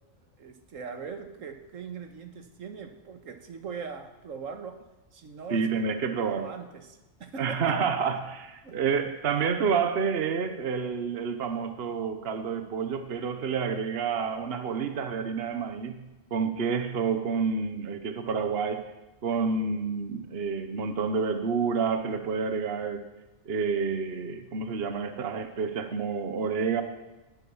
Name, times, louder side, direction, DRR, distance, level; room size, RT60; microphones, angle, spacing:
voice 1, 0.4-4.8 5.1-7.8 8.6-9.0, right 5 dB, 80° right, 1.6 m, -41 dB
voice 2, 5.5-6.5 7.4-16.0 16.3-18.8 19.2-23.1 23.5-26.8, right 5 dB, 55° right, 1.2 m, -29 dB
18.5 x 7.9 x 7.1 m
omnidirectional pair, 1.3 m